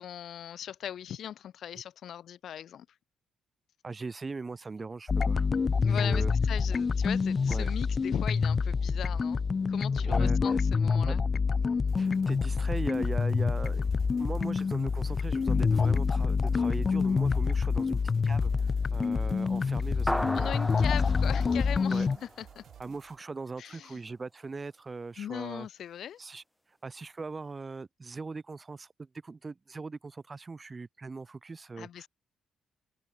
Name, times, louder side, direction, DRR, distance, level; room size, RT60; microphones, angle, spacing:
voice 1, 0.0-2.9 5.8-11.2 20.3-22.6 23.6-24.0 25.2-26.2 31.8-32.1, left 10 dB, 65° left, 1.2 m, -39 dB
voice 2, 3.8-5.5 5.7-6.3 7.5-7.7 9.9-10.6 11.0-11.2 12.0-13.8 14.2-20.5 21.9-22.1 22.8-25.7 26.2-26.4 26.8-32.1, right 4 dB, 30° right, 1.0 m, -40 dB
sound 1, 5.1-22.2, left 5 dB, 35° left, 0.4 m, -27 dB
sound 2, 11.9-23.2, right 10 dB, 70° right, 5.2 m, -55 dB
sound 3, 20.1-22.8, equal, 5° left, 0.9 m, -35 dB
open air
cardioid pair, 90°, 0 cm